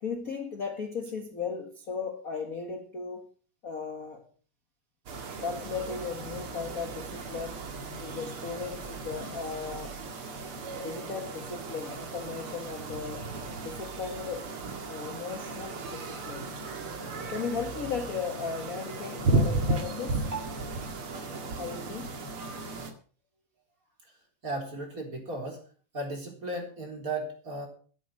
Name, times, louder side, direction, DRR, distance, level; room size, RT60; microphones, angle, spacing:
voice 1, 0.0-3.3 3.6-4.3 5.4-7.7 8.0-10.0 10.8-13.3 13.6-14.5 14.9-16.6 17.3-20.3 21.6-22.2, left 5 dB, 40° left, 1.3 m, -36 dB
sound 1, 5.1-22.9, right 2 dB, 45° right, 2.6 m, -35 dB
voice 2, 24.4-25.7 25.9-27.7, right 2 dB, 25° right, 4.2 m, -36 dB
13.0 x 11.0 x 6.2 m
omnidirectional pair, 3.7 m